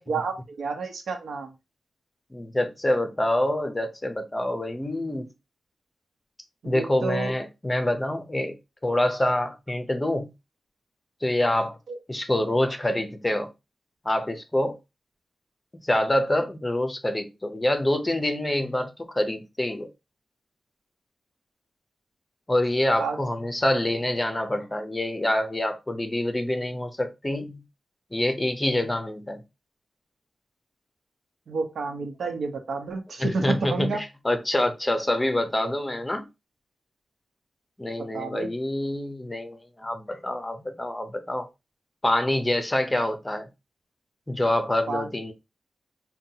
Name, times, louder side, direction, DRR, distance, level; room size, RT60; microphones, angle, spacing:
voice 1, 0.1-1.5 6.6-7.3 11.9-12.0 23.0-23.2 31.5-34.0 38.0-38.5 44.9-45.1, right 4 dB, 90° right, 0.8 m, -30 dB
voice 2, 2.3-5.3 6.6-8.6 8.8-10.3 11.2-11.8 12.1-13.5 14.0-14.8 15.8-19.9 22.5-27.6 28.1-29.4 33.2-36.3 37.8-41.5 42.0-43.5 44.3-45.3, left 1 dB, 15° left, 0.6 m, -26 dB
5.5 x 2.2 x 2.7 m
wide cardioid pair, 140°, 0 cm